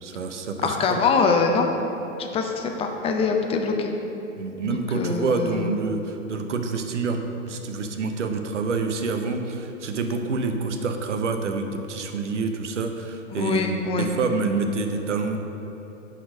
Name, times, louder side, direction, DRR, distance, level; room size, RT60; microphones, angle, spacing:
voice 1, 0.0-1.0 4.4-13.6 14.0-15.4, right 4 dB, 70° right, 6 dB, 0.9 m, -27 dB
voice 2, 0.6-1.7 2.2-3.9 4.6-5.7 13.3-14.1, left 4 dB, 15° left, 3 dB, 0.5 m, -24 dB
10.0 x 4.4 x 5.0 m, 3.0 s
figure-of-eight pair, 100°, 38 cm